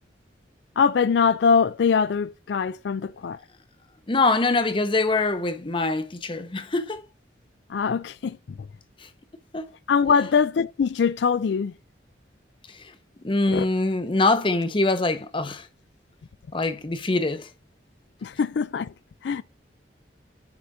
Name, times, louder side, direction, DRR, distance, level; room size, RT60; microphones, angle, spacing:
voice 1, 0.8-3.4 7.7-8.4 9.9-11.7 13.5-13.7 18.2-18.9 19.2-19.4, left 6 dB, 75° left, 0.4 m, -22 dB
voice 2, 4.1-7.0 9.5-9.7 12.7-12.9 13.2-15.7 16.5-17.5, left 2 dB, 30° left, 0.7 m, -24 dB
9.7 x 5.7 x 2.7 m
head